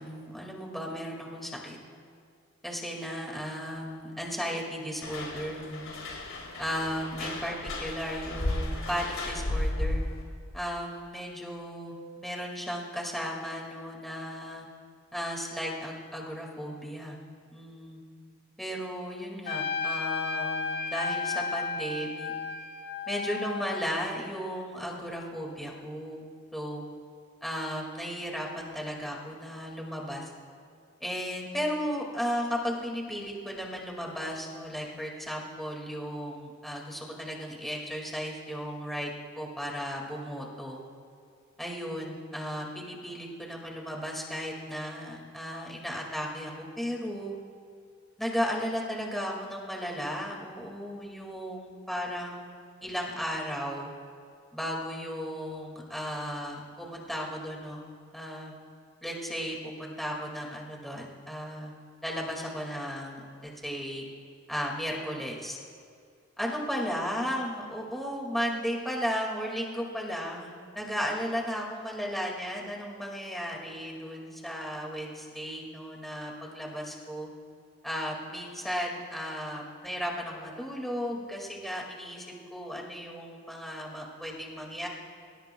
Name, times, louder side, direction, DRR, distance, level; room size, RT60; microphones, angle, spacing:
voice 1, 0.0-1.8 2.6-5.9 6.6-10.0 10.5-14.7 15.1-17.2 17.5-18.0 18.6-22.3 23.1-26.3 26.5-26.8 27.4-30.3 31.0-40.8 41.6-47.4 48.2-52.6 52.8-53.9 54.5-57.9 58.1-58.6 59.0-61.7 62.0-64.0 64.5-65.6 66.4-77.3 77.8-84.9, equal, ahead, -2 dB, 2.1 m, -35 dB
sound 1, 5.0-10.2, left 1 dB, 85° left, 4.2 m, -34 dB
Trumpet, 19.5-24.2, left 4 dB, 50° left, 1.2 m, -33 dB
27.0 x 17.0 x 2.3 m, 2.2 s
head